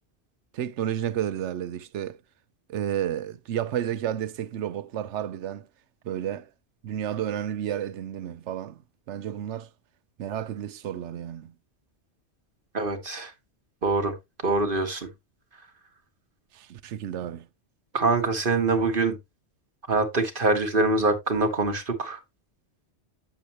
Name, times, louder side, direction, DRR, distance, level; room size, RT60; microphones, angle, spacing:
voice 1, 0.5-2.2 2.7-5.7 6.0-6.5 6.8-8.8 9.1-9.7 10.2-11.5 16.5-17.5, right 10 dB, 85° right, 1.0 m, -31 dB
voice 2, 12.7-13.3 13.8-14.1 14.4-15.1 17.9-19.2 19.9-22.2, right 3 dB, 50° right, 1.3 m, -24 dB
8.1 x 7.0 x 2.9 m
omnidirectional pair, 1.2 m